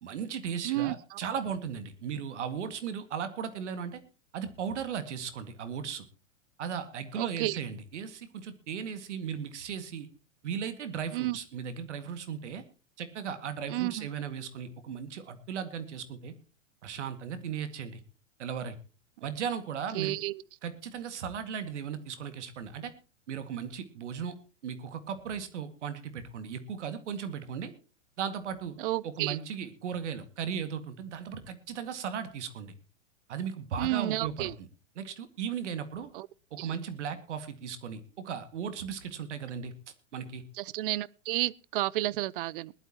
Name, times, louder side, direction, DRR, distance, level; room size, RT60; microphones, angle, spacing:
voice 1, 0.0-4.0 4.3-6.0 6.6-10.1 10.4-12.6 13.0-16.3 16.8-18.0 18.4-18.8 19.2-20.1 20.6-22.9 23.3-24.3 24.6-27.7 28.2-28.8 29.0-32.7 33.3-34.7 35.0-36.1 36.5-39.7 40.1-40.4, right 7 dB, 65° right, 2.1 m, -36 dB
voice 2, 0.6-1.2 7.1-7.6 11.1-11.4 13.7-14.1 19.9-20.4 28.8-29.4 33.8-34.5 36.1-36.3 36.6-36.7 40.6-42.7, right 17 dB, 45° right, 0.6 m, -31 dB
20.5 x 12.0 x 2.9 m
hypercardioid pair, 110°, 38 cm